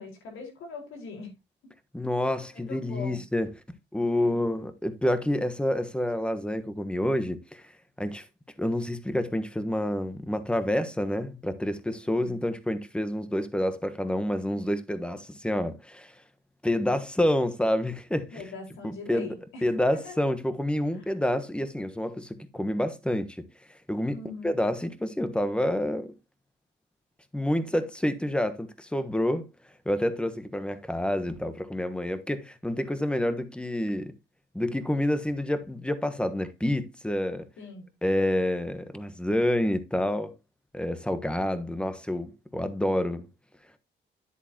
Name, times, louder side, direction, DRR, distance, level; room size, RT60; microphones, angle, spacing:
voice 1, 0.0-1.3 2.5-3.2 4.1-4.4 12.1-12.4 18.3-20.2 24.1-24.6 37.6-37.9, left 4 dB, 85° left, 4.8 m, -41 dB
voice 2, 1.9-3.5 3.9-7.6 8.0-8.2 8.6-16.1 16.6-18.4 18.8-19.4 19.6-23.4 23.9-24.2 24.4-26.1 27.3-29.5 29.8-34.1 34.5-37.5 38.0-40.3 40.7-43.3, left 1 dB, 5° left, 1.3 m, -28 dB
10.0 x 8.3 x 2.9 m
cardioid pair, 90°, 20 cm